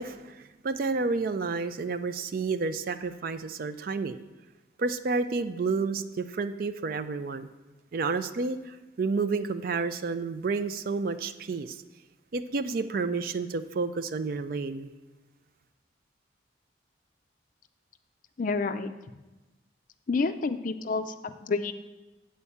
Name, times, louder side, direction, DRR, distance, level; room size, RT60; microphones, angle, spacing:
voice 1, 0.0-4.2 4.8-7.5 7.9-11.8 12.3-14.9, right 4 dB, 50° right, 11 dB, 0.4 m, -30 dB
voice 2, 18.4-18.9 20.1-21.7, left 4 dB, 45° left, 10 dB, 0.4 m, -29 dB
8.5 x 4.4 x 7.0 m, 1.1 s
head